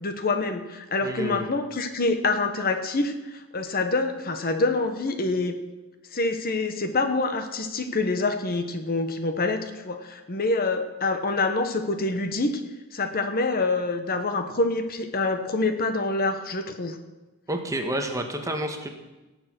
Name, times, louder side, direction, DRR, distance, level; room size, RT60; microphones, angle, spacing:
voice 1, 0.0-5.6 6.1-12.6 12.9-17.0, left 3 dB, 45° left, 7 dB, 1.1 m, -26 dB
voice 2, 1.0-1.5 17.5-18.9, right 1 dB, 15° right, 4 dB, 1.3 m, -29 dB
18.0 x 7.4 x 6.1 m, 1.1 s
head